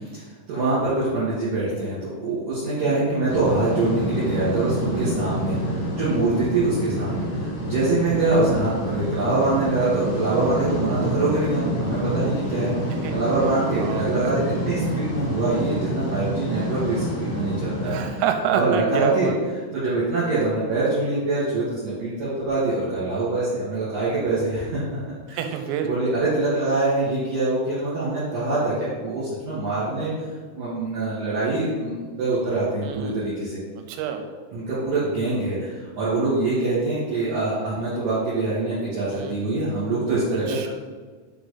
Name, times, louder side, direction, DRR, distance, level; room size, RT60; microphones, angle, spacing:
voice 1, 0.1-12.7 13.1-17.9 18.5-19.3 19.7-25.0 25.3-25.4 25.8-30.1 30.5-33.6 34.5-40.7, right 2 dB, 50° right, -11 dB, 3.1 m, -24 dB
sound 1, 3.3-18.1, equal, 55° left, 2.5 m, -27 dB
voice 2, 13.8-14.4 17.8-19.4 25.3-25.9 32.8-33.2 33.8-34.2 39.1-39.4 40.5-40.7, right 8 dB, 85° right, 5 dB, 3.1 m, -27 dB
6.7 x 4.8 x 3.9 m, 1.4 s
omnidirectional pair, 6.0 m